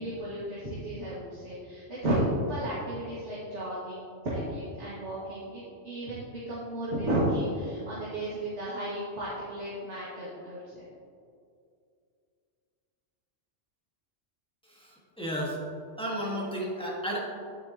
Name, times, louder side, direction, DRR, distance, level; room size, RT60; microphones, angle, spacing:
voice 1, 0.0-10.9, right 1 dB, 70° right, -9 dB, 2.3 m, -33 dB
voice 2, 14.7-15.6 16.0-17.2, equal, 5° left, -5 dB, 1.6 m, -33 dB
9.9 x 9.3 x 2.9 m, 2.3 s
omnidirectional pair, 1.3 m